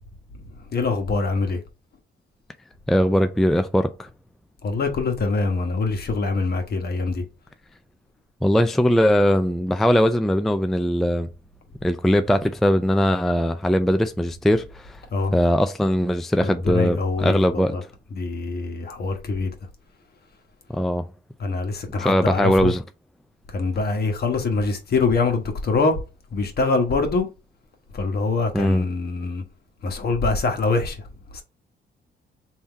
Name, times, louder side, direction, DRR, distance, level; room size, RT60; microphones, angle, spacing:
voice 1, 0.7-1.6 4.6-7.2 15.1-15.3 16.4-17.8 18.1-19.5 21.4-22.7 23.5-26.0 26.3-27.3 27.9-29.4 29.8-31.0 31.3-31.4, left 3 dB, 50° left, 1.2 m, -24 dB
voice 2, 2.9-4.1 8.4-11.3 11.8-15.0 15.3-17.8 20.7-21.1 22.0-22.8 28.5-28.8, equal, ahead, 0.3 m, -20 dB
3.5 x 2.8 x 4.5 m
cardioid pair, 90°, 20 cm